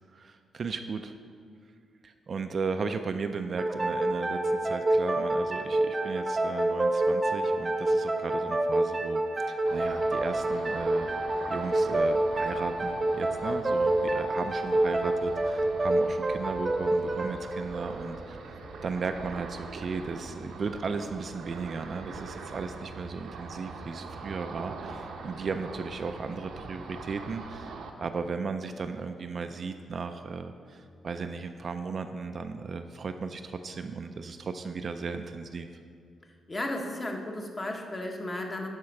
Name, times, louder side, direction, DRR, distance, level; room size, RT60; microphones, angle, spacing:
voice 1, 0.1-1.1 2.0-11.1 11.5-18.4 18.8-35.7, right 4 dB, 40° right, 7 dB, 0.4 m, -36 dB
sound 1, 3.6-18.9, right 1 dB, 25° right, 0.8 m, -28 dB
Ocean, 9.7-27.9, right 4 dB, 80° right, 0.8 m, -43 dB
voice 2, 36.5-38.7, left 1 dB, 25° left, 2 dB, 0.9 m, -34 dB
11.0 x 4.3 x 5.9 m, 2.2 s
cardioid pair, 140°, 0 cm